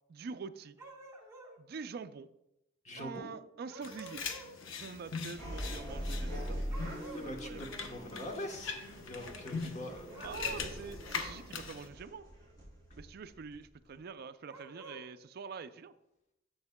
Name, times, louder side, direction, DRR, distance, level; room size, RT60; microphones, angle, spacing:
voice 1, 0.1-0.8 1.6-2.3 3.0-4.3 4.7-6.6 7.2-7.7 10.2-12.2 13.0-15.9, right 5 dB, 50° right, 11 dB, 0.4 m, -45 dB
sound 1, 0.8-1.6 3.7-4.6 6.7-7.3 10.0-10.8 14.5-15.0, right 2 dB, 15° right, 1.2 m, -49 dB
voice 2, 2.8-3.3 7.1-10.1, left 1 dB, 35° left, 3 dB, 1.1 m, -43 dB
sound 2, 3.8-11.9, left 5 dB, 75° left, 0.7 m, -42 dB
sound 3, 5.3-14.0, equal, 20° left, 3.1 m, -42 dB
10.5 x 7.0 x 2.2 m, 0.86 s
head